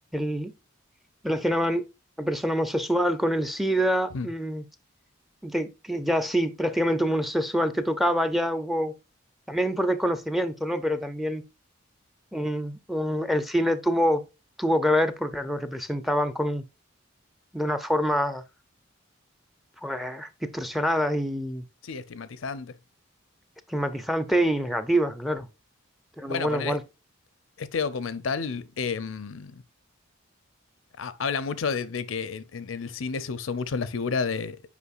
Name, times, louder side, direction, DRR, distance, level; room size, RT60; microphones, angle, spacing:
voice 1, 0.1-0.5 1.2-1.9 2.2-4.6 5.4-8.9 9.5-11.4 12.3-14.2 14.6-16.6 17.5-18.4 19.8-21.7 23.7-25.5 26.2-26.8, equal, ahead, 0.5 m, -26 dB
voice 2, 21.8-22.7 26.3-26.8 27.6-29.6 31.0-34.6, left 5 dB, 70° left, 0.6 m, -31 dB
8.2 x 5.2 x 2.4 m
head